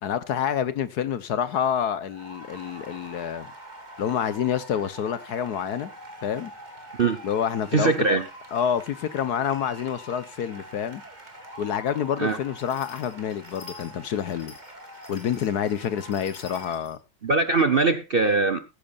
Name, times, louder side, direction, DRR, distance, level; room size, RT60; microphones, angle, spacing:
voice 1, 0.0-3.5 4.0-5.9 6.2-6.5 7.2-8.2 8.5-11.0 11.6-14.5 15.1-17.0, left 8 dB, 65° left, 1.3 m, -28 dB
sound 1, 1.8-16.7, right 1 dB, 25° right, 2.7 m, -45 dB
voice 2, 7.7-8.2 12.2-12.4 17.2-18.6, right 3 dB, 45° right, 0.8 m, -21 dB
sound 2, 12.6-17.0, left 5 dB, 85° left, 4.0 m, -49 dB
15.5 x 14.0 x 2.4 m
omnidirectional pair, 2.0 m